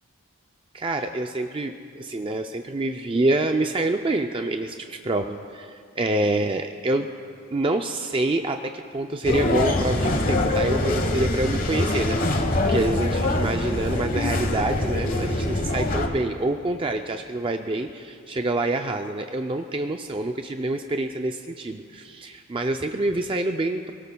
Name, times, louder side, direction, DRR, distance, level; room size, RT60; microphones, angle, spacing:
voice 1, 0.7-7.1 7.5-23.9, right 2 dB, 25° right, 5 dB, 0.4 m, -27 dB
sound 1, 9.2-16.1, left 2 dB, 40° left, 1.2 m, -24 dB
28.0 x 18.0 x 2.3 m, 2.3 s
head